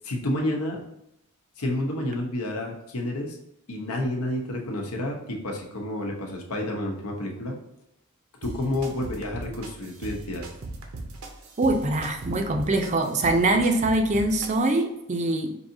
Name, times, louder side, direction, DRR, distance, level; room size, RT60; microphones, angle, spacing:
voice 1, 0.0-0.8 1.6-3.4 3.7-7.6 8.4-10.4, left 1 dB, 90° left, 1 dB, 0.9 m, -30 dB
sound 1, 8.4-14.8, right 2 dB, 75° right, 0.7 m, -39 dB
voice 2, 11.6-15.5, right 2 dB, 30° right, 4 dB, 0.4 m, -23 dB
4.7 x 2.7 x 2.7 m, 0.84 s
head